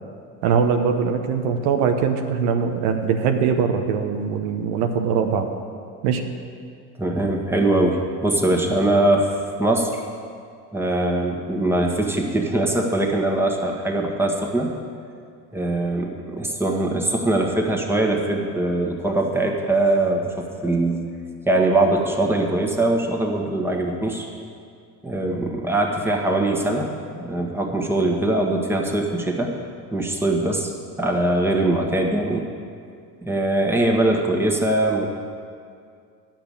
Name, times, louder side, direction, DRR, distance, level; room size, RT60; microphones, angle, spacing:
voice 1, 0.4-5.5 6.0-6.2, right 6 dB, 80° right, 5 dB, 1.0 m, -21 dB
voice 2, 7.0-10.0 10.7-14.7 15.5-21.0 21.4-24.3 25.0-26.9 27.2-29.5 29.9-30.7 31.0-32.5 33.2-35.1, right 2 dB, 5° right, 0 dB, 1.6 m, -22 dB
10.0 x 6.0 x 8.5 m, 2.3 s
supercardioid pair, 85°, 42 cm